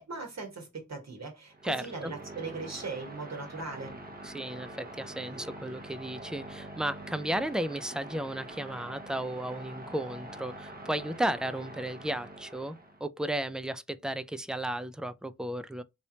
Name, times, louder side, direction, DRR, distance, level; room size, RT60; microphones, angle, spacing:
voice 1, 0.0-3.9, right 3 dB, 55° right, 1.3 m, -39 dB
sound 1, 1.5-13.0, right 1 dB, 30° right, 0.9 m, -45 dB
voice 2, 1.6-2.1 4.2-12.8 13.0-15.8, right 1 dB, ahead, 0.3 m, -34 dB
3.3 x 2.9 x 2.7 m
wide cardioid pair, 60°, 32 cm